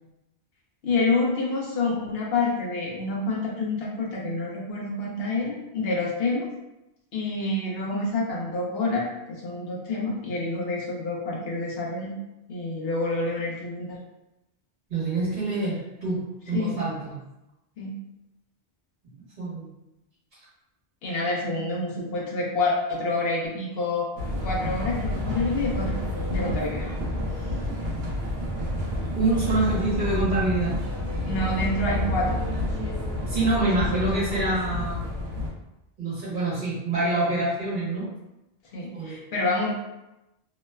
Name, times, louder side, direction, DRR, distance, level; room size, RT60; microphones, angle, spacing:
voice 1, 0.8-6.5 7.1-12.2 12.5-14.0 16.5-16.8 17.8-18.0 21.0-24.1 24.3-26.0 26.3-26.9 31.2-32.4 33.9-34.0 38.7-39.7, left 2 dB, 70° left, -3 dB, 0.8 m, -28 dB
voice 2, 14.9-16.2 16.5-17.1 19.4-19.7 29.1-30.8 33.3-35.0 36.0-38.1 38.9-39.2, right 2 dB, 50° right, -9 dB, 1.3 m, -26 dB
sound 1, 24.2-35.5, left 1 dB, 75° right, 0.8 m, -29 dB
2.9 x 2.1 x 2.2 m, 0.94 s
omnidirectional pair, 1.1 m